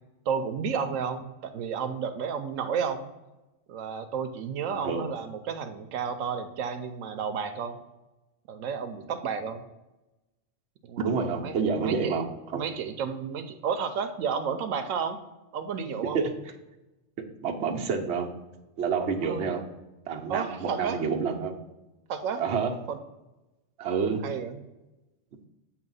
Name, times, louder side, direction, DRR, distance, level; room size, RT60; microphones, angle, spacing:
voice 1, 0.3-3.0 3.7-7.8 8.5-9.6 10.8-12.2 12.5-15.2 15.5-16.2 19.2-19.4 20.3-21.0 22.1-22.4 22.9-23.0 24.2-24.6, right 6 dB, 90° right, 7 dB, 1.0 m, -32 dB
voice 2, 4.7-5.0 11.0-12.3 12.5-12.6 16.1-16.2 17.4-18.3 18.8-19.6 20.1-21.5 22.4-22.7 23.8-24.2, right 5 dB, 60° right, 2 dB, 1.0 m, -28 dB
8.2 x 2.9 x 5.4 m, 1.0 s
omnidirectional pair, 1.3 m